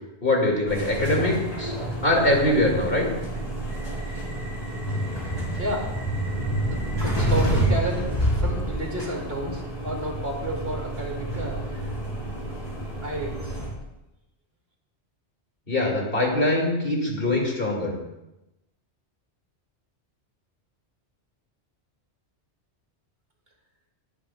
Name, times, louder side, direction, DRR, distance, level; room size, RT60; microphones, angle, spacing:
voice 1, 0.2-1.7 2.0-3.0 15.7-17.9, left 1 dB, 55° left, -1 dB, 2.8 m, -23 dB
sound 1, 0.7-13.7, right 1 dB, 35° left, 4.0 m, -28 dB
voice 2, 6.7-11.8 13.0-13.6, right 1 dB, 60° right, -1 dB, 3.0 m, -31 dB
22.0 x 10.0 x 2.5 m, 0.93 s
omnidirectional pair, 1.2 m